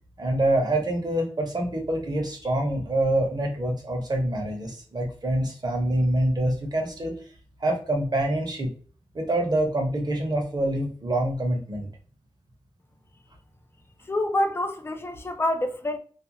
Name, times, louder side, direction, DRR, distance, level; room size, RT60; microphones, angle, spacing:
voice 1, 0.2-7.1 7.6-8.7 9.1-11.9, right 1 dB, 40° right, 0.8 m, -26 dB
voice 2, 14.1-16.0, left 1 dB, 25° left, 0.4 m, -27 dB
2.4 x 2.1 x 2.8 m
wide cardioid pair, 90°, 10 cm